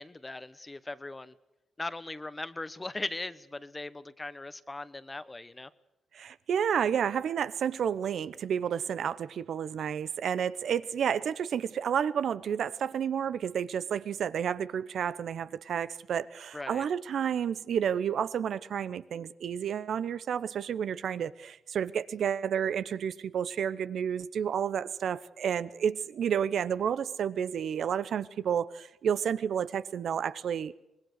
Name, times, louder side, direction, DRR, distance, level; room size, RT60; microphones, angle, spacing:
voice 1, 0.0-1.3 1.8-5.7 16.5-16.8, left 2 dB, 25° left, 1.2 m, -39 dB
voice 2, 6.1-30.7, right 8 dB, 70° right, 0.8 m, -31 dB
24.5 x 19.5 x 6.6 m
supercardioid pair, 50°, 0 cm